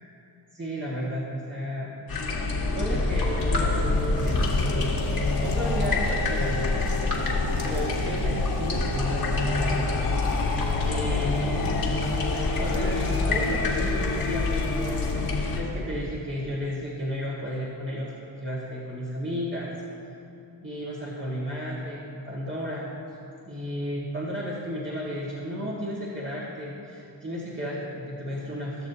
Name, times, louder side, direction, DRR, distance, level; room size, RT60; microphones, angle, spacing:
voice 1, 0.5-1.9 2.8-5.1 5.4-6.7 7.6-10.0 10.8-11.8 12.6-18.1 18.4-19.7 20.4-22.9 23.5-28.9, equal, 25° right, -7 dB, 1.8 m, -33 dB
sound 1, 2.1-15.6, left 3 dB, 55° left, 1.8 m, -25 dB
18.0 x 6.5 x 2.8 m, 2.7 s
cardioid pair, 65°, 43 cm